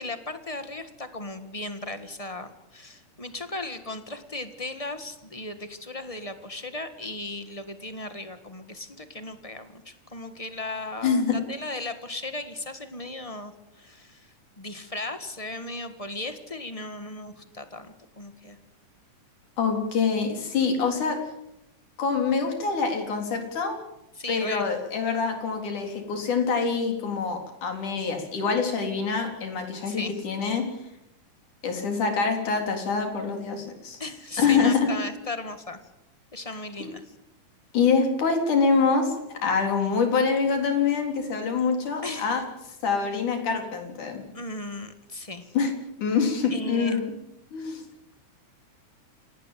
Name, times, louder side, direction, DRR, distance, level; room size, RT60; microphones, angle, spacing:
voice 1, 0.0-18.6 24.2-24.7 29.8-30.2 34.0-35.8 36.3-37.1 42.0-42.3 44.3-45.5 46.5-47.0, left 2 dB, 25° left, 9 dB, 0.7 m, -36 dB
voice 2, 11.0-11.4 19.6-21.2 22.0-23.8 24.3-30.7 31.6-34.0 34.4-35.0 37.7-42.4 42.8-44.2 45.6-45.7 46.0-47.1 47.5-47.8, left 5 dB, 75° left, 4 dB, 5.3 m, -25 dB
28.5 x 18.5 x 7.5 m, 0.86 s
omnidirectional pair, 3.6 m